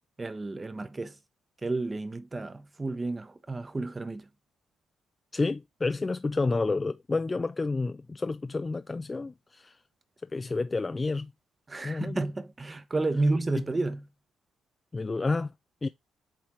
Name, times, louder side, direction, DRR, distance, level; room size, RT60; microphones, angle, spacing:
voice 1, 0.2-1.1 1.6-4.3 11.7-14.1, right 2 dB, 25° right, 0.9 m, -31 dB
voice 2, 5.3-9.7 10.3-11.3 11.8-12.2 14.9-15.5 15.8-15.9, left 3 dB, 25° left, 0.3 m, -30 dB
7.7 x 3.6 x 4.3 m
cardioid pair, 90°, 0 cm